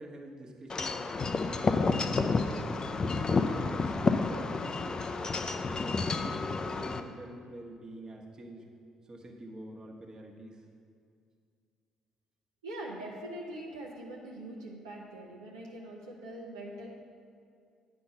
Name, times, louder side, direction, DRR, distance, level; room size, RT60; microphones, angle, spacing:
voice 1, 0.0-1.6 2.1-2.4 3.3-3.9 4.2-5.1 5.5-8.7 9.1-10.6, right 1 dB, 35° right, 0 dB, 1.2 m, -46 dB
Wind chime / Wind, 0.7-7.0, left 4 dB, 35° left, 0.5 m, -30 dB
voice 2, 12.6-16.9, right 1 dB, 85° right, -3 dB, 0.8 m, -42 dB
8.9 x 4.4 x 5.5 m, 2.3 s
hypercardioid pair, 50°, 2 cm